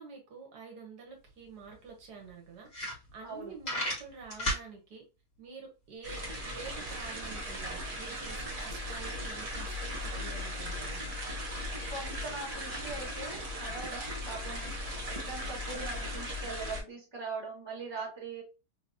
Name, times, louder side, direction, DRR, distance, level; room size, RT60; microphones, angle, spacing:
voice 1, 0.0-5.1 5.4-11.0, right 5 dB, 75° right, 1.5 m, -48 dB
sound 1, 1.3-1.4 1.7-1.8 2.3-2.4 2.6-3.3 3.6-4.6, equal, 40° left, 2.1 m, -32 dB
voice 2, 3.2-3.5 11.9-14.7 15.1-18.4, right 3 dB, 15° right, 1.5 m, -41 dB
sound 2, 6.0-16.8, equal, 35° right, 0.6 m, -38 dB
3.7 x 2.9 x 2.6 m
omnidirectional pair, 1.8 m